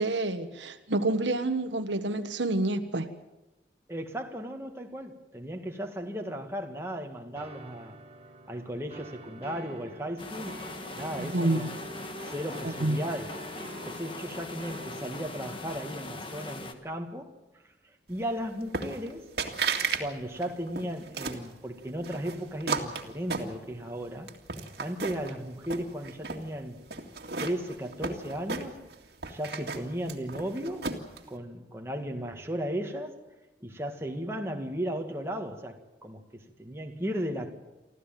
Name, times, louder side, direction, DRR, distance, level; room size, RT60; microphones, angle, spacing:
voice 1, 0.0-3.1 11.2-11.6 12.8-13.0, right 2 dB, 85° right, 8 dB, 1.4 m, -28 dB
voice 2, 3.9-8.0 8.5-10.6 10.9-11.8 12.2-13.4 13.9-17.3 18.1-19.3 20.0-24.3 24.8-26.8 27.4-28.8 29.3-30.9 31.3-33.2 33.6-37.5, equal, 15° right, 2 dB, 2.0 m, -35 dB
sound 1, 7.4-15.6, right 1 dB, 35° right, 1.7 m, -46 dB
sound 2, 10.2-16.7, left 2 dB, 30° left, 1.5 m, -41 dB
sound 3, 18.7-19.1 19.4-20.0 20.4-21.5 22.0-23.9 24.3-25.3 25.6-26.4 26.9-28.9 29.2-31.2, right 4 dB, 60° right, 2.2 m, -33 dB
25.0 x 14.5 x 9.2 m, 1.0 s
head